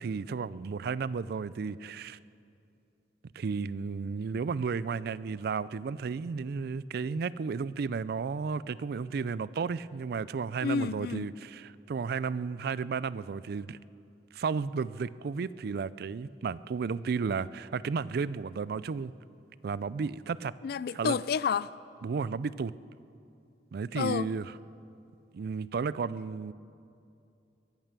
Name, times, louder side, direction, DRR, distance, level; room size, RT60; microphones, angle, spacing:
voice 1, 0.0-2.2 3.4-13.8 14.3-19.1 19.6-20.5 20.9-21.2 22.0-22.7 23.7-24.5 25.3-26.5, right 5 dB, 60° right, 18 dB, 0.4 m, -33 dB
voice 2, 10.6-11.3 20.6-21.7 24.0-24.3, left 6 dB, 60° left, 19 dB, 0.3 m, -30 dB
22.5 x 9.1 x 6.8 m, 2.6 s
head